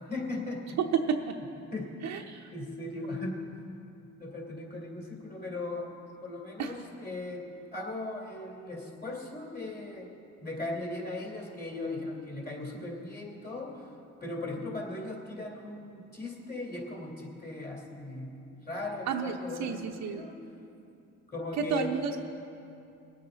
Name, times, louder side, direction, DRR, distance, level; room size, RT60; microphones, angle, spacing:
voice 1, 0.0-0.8 1.1-2.2 2.5-3.6 4.2-5.9 6.2-10.1 10.4-13.9 14.2-20.4 21.3-22.0, left 2 dB, 30° left, -1 dB, 3.0 m, -38 dB
voice 2, 0.8-1.4 2.0-2.5 6.6-6.7 19.1-19.3 19.6-20.2 21.6-22.2, right 6 dB, 70° right, 1 dB, 0.8 m, -30 dB
21.5 x 8.7 x 3.9 m, 2.7 s
cardioid pair, 90°, 30 cm